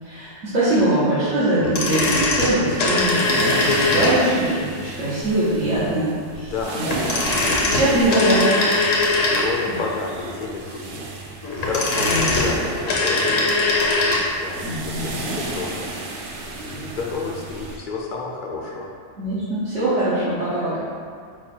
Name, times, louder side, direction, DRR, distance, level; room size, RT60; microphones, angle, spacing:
voice 1, 0.0-7.0 7.7-8.4 12.0-12.3 14.6-15.0 19.2-20.8, right 1 dB, 85° right, -12 dB, 1.4 m, -22 dB
sound 1, 1.6-4.5 6.9-9.8 11.4-14.3 14.5-14.6, left 2 dB, 85° left, 1.2 m, -21 dB
sound 2, 2.6-17.8, right 3 dB, 70° right, 0.8 m, -33 dB
voice 2, 6.4-7.8 9.2-11.1 11.4-13.5 14.3-16.1 16.5-18.9, left 4 dB, 65° left, -2 dB, 0.5 m, -30 dB
5.0 x 2.2 x 4.3 m, 2.2 s
omnidirectional pair, 1.3 m